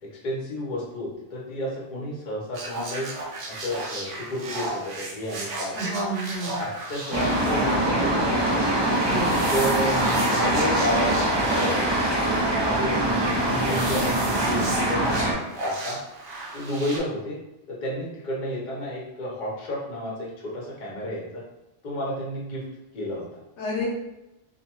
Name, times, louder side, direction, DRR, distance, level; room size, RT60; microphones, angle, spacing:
voice 1, 0.0-3.1 3.5-5.9 6.5-8.7 9.5-11.5 12.6-15.0 15.6-16.0 16.5-17.4 17.7-21.4 21.8-22.6 22.9-23.4, left 1 dB, 50° left, -4 dB, 0.8 m, -31 dB
sound 1, 2.5-17.0, right 2 dB, 80° right, 0.9 m, -34 dB
voice 2, 5.7-6.6 9.0-9.4 23.6-23.9, equal, 75° left, -3 dB, 1.0 m, -30 dB
sound 2, 7.1-15.3, right 1 dB, 40° right, 0.4 m, -23 dB
2.6 x 2.1 x 2.9 m, 0.93 s
omnidirectional pair, 1.2 m